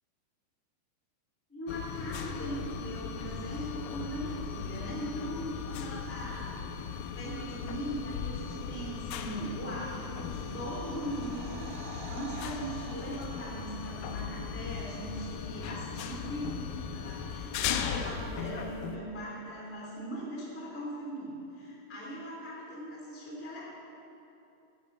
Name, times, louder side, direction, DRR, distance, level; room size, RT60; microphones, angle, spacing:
voice 1, 1.5-6.8 7.1-23.8, right 1 dB, 5° left, -4 dB, 2.0 m, -40 dB
sound 1, 1.7-19.0, left 7 dB, 80° left, 2.1 m, -38 dB
sound 2, 9.6-14.4 14.7-14.8, right 5 dB, 85° right, 3.1 m, -50 dB
16.5 x 9.3 x 5.5 m, 2.9 s
omnidirectional pair, 4.7 m